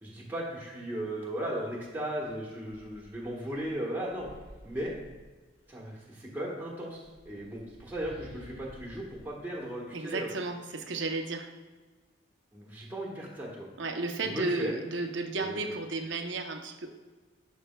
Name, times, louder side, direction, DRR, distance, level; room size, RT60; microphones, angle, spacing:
voice 1, 0.0-4.3 4.6-4.9 5.7-10.3 12.5-13.7 14.3-14.7 15.5-15.7, right 1 dB, 10° right, -4 dB, 1.2 m, -36 dB
sound 1, 2.6-5.8 6.8-10.4, equal, 65° left, 2.0 m, -54 dB
voice 2, 9.9-11.5 13.8-16.9, right 3 dB, 65° right, 5 dB, 0.7 m, -33 dB
11.0 x 5.2 x 2.2 m, 1.3 s
head